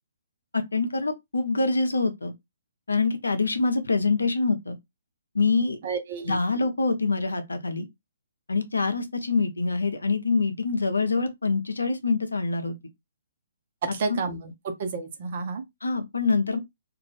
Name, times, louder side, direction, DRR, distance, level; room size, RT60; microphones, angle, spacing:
voice 1, 0.5-2.3 2.9-4.8 5.3-5.8 6.2-7.9 8.5-12.7 14.1-14.2 15.8-16.6, left 3 dB, 75° left, 0.7 m, -25 dB
voice 2, 5.8-6.4 13.8-14.5 14.8-15.6, right 4 dB, 45° right, 0.9 m, -30 dB
2.5 x 2.5 x 3.3 m
figure-of-eight pair, 130°, 0 cm